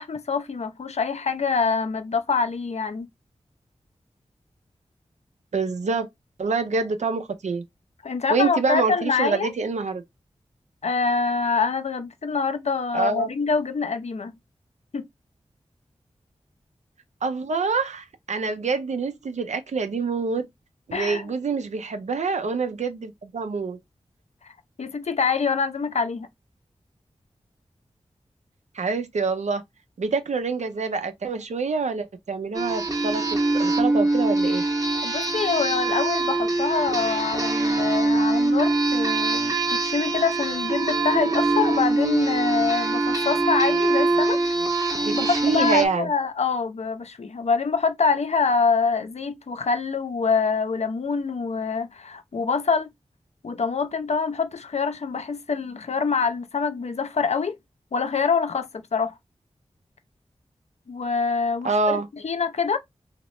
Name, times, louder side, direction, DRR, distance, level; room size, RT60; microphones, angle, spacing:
voice 1, 0.0-3.1 8.0-9.5 10.8-14.3 14.9-15.1 20.9-21.3 24.4-24.5 24.8-26.3 35.0-44.4 45.1-52.9 53.4-57.6 57.9-59.1 60.9-62.8, left 5 dB, 65° left, 0.6 m, -25 dB
voice 2, 5.5-6.1 6.4-7.6 8.3-10.0 12.9-13.3 17.2-20.5 20.9-23.8 28.7-29.6 30.0-33.2 33.5-34.6 45.0-46.1 61.6-62.1, right 4 dB, 75° right, 0.6 m, -26 dB
sound 1, 32.5-45.9, right 2 dB, 30° right, 0.9 m, -23 dB
3.0 x 2.9 x 3.1 m
cardioid pair, 40°, 12 cm